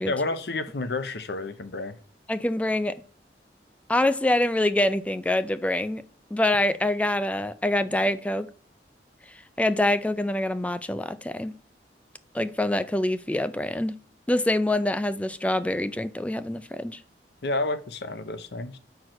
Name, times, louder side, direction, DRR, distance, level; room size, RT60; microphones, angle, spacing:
voice 1, 0.1-2.0 17.4-18.8, left 2 dB, 65° left, 0.8 m, -30 dB
voice 2, 2.3-3.0 3.9-6.0 6.3-8.5 9.6-11.5 12.3-14.0 14.3-17.0, left 1 dB, 10° left, 0.4 m, -25 dB
5.8 x 4.7 x 6.4 m
head